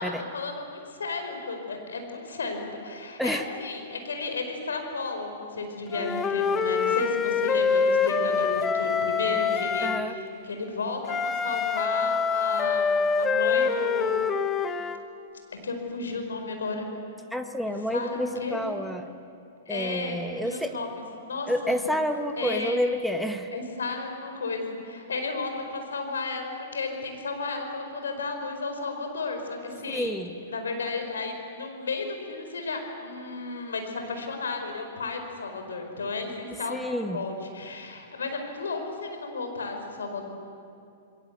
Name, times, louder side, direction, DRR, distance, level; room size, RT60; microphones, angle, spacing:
voice 1, 0.0-14.3 15.6-16.9 17.9-18.7 19.7-20.9 21.2-21.7 22.4-22.8 23.5-30.2 30.5-40.2, left 3 dB, 85° left, 4 dB, 4.9 m, -33 dB
Wind instrument woodwind instrument, 5.9-10.1 11.1-15.0, left 5 dB, 20° left, 1.2 m, -25 dB
voice 2, 9.8-10.1 17.3-19.1 19.7-20.8 21.5-23.5 29.9-30.3 36.7-37.2, equal, ahead, 6 dB, 1.6 m, -29 dB
29.0 x 21.0 x 8.3 m, 2.6 s
hypercardioid pair, 115°, 0 cm